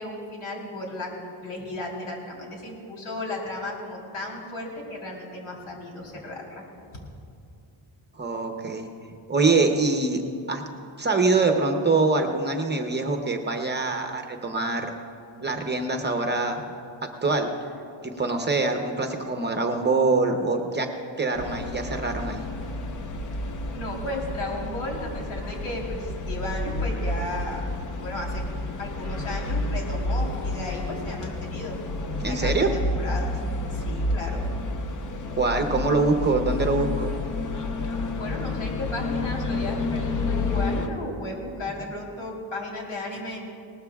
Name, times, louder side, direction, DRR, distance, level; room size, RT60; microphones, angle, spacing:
voice 1, 0.0-6.6 23.7-27.6 28.0-28.4 28.8-31.8 32.3-33.4 33.7-34.4 38.1-43.4, left 1 dB, 85° left, -1 dB, 3.6 m, -34 dB
voice 2, 8.2-8.9 9.3-10.2 10.5-10.6 11.0-14.9 15.4-16.7 17.0-17.5 18.2-20.9 21.2-22.4 32.2-32.7 35.3-37.1, right 3 dB, 20° right, 4 dB, 0.7 m, -24 dB
sound 1, 21.3-40.9, left 2 dB, 40° left, 0.8 m, -30 dB
20.5 x 19.0 x 2.3 m, 2.5 s
wide cardioid pair, 170°, 49 cm